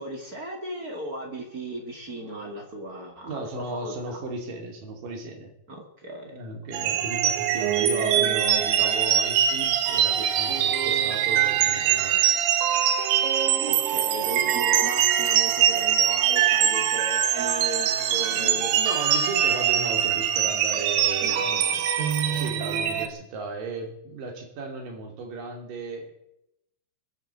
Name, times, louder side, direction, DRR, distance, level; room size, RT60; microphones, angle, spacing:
voice 1, 0.0-4.2 5.7-6.4 6.8-7.0 13.7-18.7 21.2-21.9, equal, 30° right, 2 dB, 1.7 m, -37 dB
voice 2, 3.2-5.5 6.2-12.2 18.0-21.8 22.3-26.1, right 3 dB, 50° right, 3 dB, 4.1 m, -35 dB
sound 1, 6.7-23.1, right 10 dB, 80° right, 3.6 m, -23 dB
21.5 x 8.2 x 8.1 m, 0.82 s
omnidirectional pair, 5.2 m